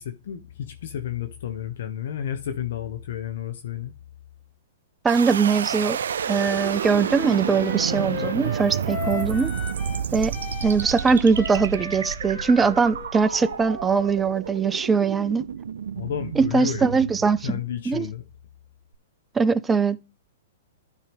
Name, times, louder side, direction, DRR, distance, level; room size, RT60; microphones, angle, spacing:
voice 1, 0.0-3.9 16.0-17.0 17.4-18.2, left 10 dB, 65° left, 0.9 m, -31 dB
voice 2, 5.0-6.0 6.3-9.5 10.1-10.3 10.6-15.5 16.4-17.6 17.9-18.1 19.3-20.0, right 5 dB, 15° right, 0.5 m, -21 dB
sound 1, 5.1-18.0, right 8 dB, 75° right, 0.4 m, -30 dB
Wind instrument woodwind instrument, 6.5-10.1 10.3-14.2, left 5 dB, 45° left, 2.7 m, -36 dB
11.5 x 4.7 x 3.5 m
hypercardioid pair, 125°, 0 cm